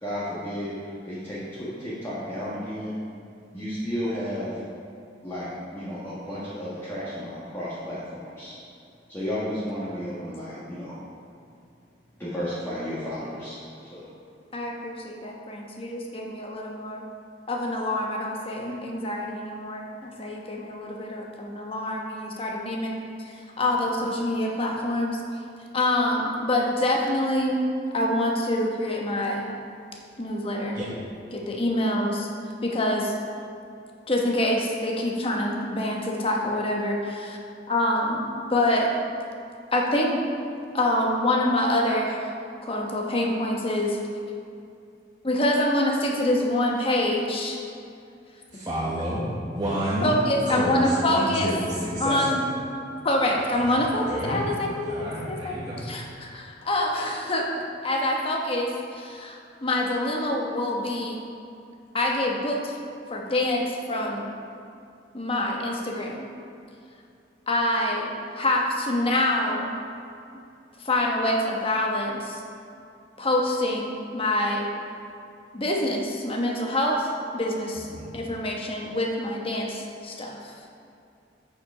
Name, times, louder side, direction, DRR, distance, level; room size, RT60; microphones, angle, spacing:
voice 1, 0.0-2.9 3.5-4.6 5.2-8.6 9.1-11.0 12.2-14.1, equal, 15° left, -11 dB, 1.7 m, -33 dB
voice 2, 14.5-17.0 17.5-25.2 25.7-27.6 27.9-29.5 30.2-30.8 31.3-32.3 32.6-33.1 34.1-37.4 37.7-38.9 39.7-40.2 40.7-42.3 42.6-44.0 45.2-47.6 50.0-51.5 52.0-52.5 53.0-55.5 55.8-61.2 61.9-62.8 63.1-64.3 65.1-66.3 67.5-69.7 70.8-72.4 73.2-74.7 75.5-77.9 78.1-80.5, left 1 dB, 30° left, 0 dB, 1.1 m, -26 dB
voice 3, 48.5-50.2 50.5-52.4 53.4-53.7 54.1-54.4 54.9-55.9 77.7-78.1, equal, 25° right, -9 dB, 1.3 m, -30 dB
8.1 x 6.9 x 4.9 m, 2.5 s
head